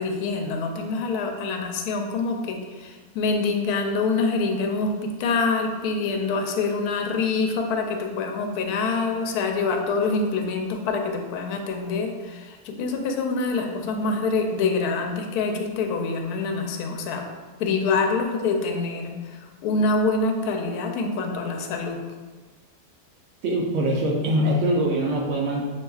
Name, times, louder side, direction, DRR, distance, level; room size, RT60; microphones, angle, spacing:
voice 1, 0.0-17.3 17.6-22.0, left 4 dB, 80° left, 3 dB, 1.1 m, -26 dB
voice 2, 23.4-25.6, right 1 dB, 65° right, -3 dB, 0.7 m, -23 dB
6.4 x 2.8 x 2.3 m, 1.4 s
omnidirectional pair, 1.6 m